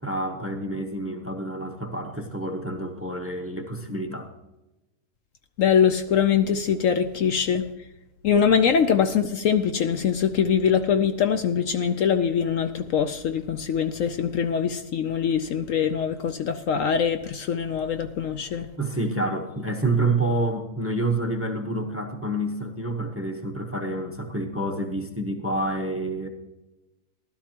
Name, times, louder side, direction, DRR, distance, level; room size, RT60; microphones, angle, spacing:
voice 1, 0.0-4.3 18.8-26.3, right 2 dB, 10° right, 0.8 m, -28 dB
voice 2, 5.6-7.7 8.2-18.7, left 7 dB, 65° left, 0.9 m, -23 dB
16.0 x 12.0 x 2.9 m
omnidirectional pair, 1.6 m